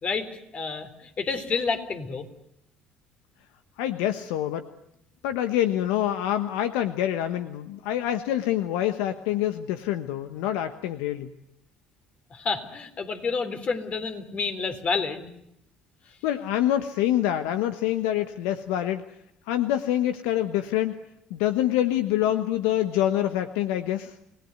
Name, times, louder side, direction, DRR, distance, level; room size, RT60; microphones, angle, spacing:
voice 1, 0.0-2.2 12.3-15.3, left 4 dB, 45° left, 8 dB, 3.8 m, -29 dB
voice 2, 3.8-4.6 5.2-11.3 16.2-19.0 19.5-21.0 21.3-24.1, left 12 dB, 85° left, 10 dB, 1.1 m, -26 dB
29.0 x 18.0 x 9.5 m, 0.82 s
supercardioid pair, 70°, 3 cm